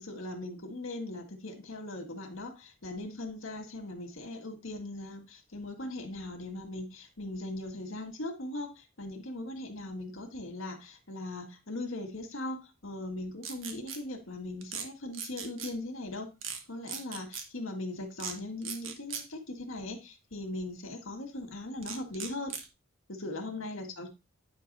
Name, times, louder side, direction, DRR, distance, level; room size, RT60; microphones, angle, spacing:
voice 1, 0.0-16.3 16.7-22.6 23.1-24.1, left 2 dB, 80° left, 5 dB, 1.8 m, -39 dB
sound 1, 13.4-14.0 14.6-14.8 15.1-15.7 16.4-16.6 16.9-17.4 18.2-18.3 18.6-19.2 21.8-22.7, right 7 dB, 75° right, 1.3 m, -38 dB
9.7 x 3.4 x 5.4 m, 0.25 s
head